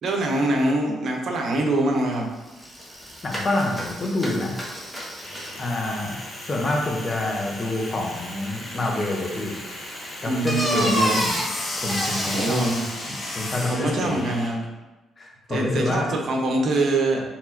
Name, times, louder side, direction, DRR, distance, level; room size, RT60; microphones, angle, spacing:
voice 1, 0.0-2.3 10.2-11.2 12.3-12.8 13.7-14.6 15.5-17.2, right 2 dB, 60° right, 0 dB, 1.0 m, -24 dB
Bicycle, 2.1-2.2 2.5-13.2, equal, 5° left, 1.2 m, -32 dB
voice 2, 3.2-4.5 5.6-6.2 6.4-9.6 10.2-12.6 13.3-14.3 15.2-16.1, left 2 dB, 35° left, -1 dB, 1.1 m, -27 dB
sound 1, 5.2-14.5, left 1 dB, 60° left, 1.4 m, -35 dB
4.6 x 3.6 x 2.9 m, 1.1 s
cardioid pair, 90°, 0 cm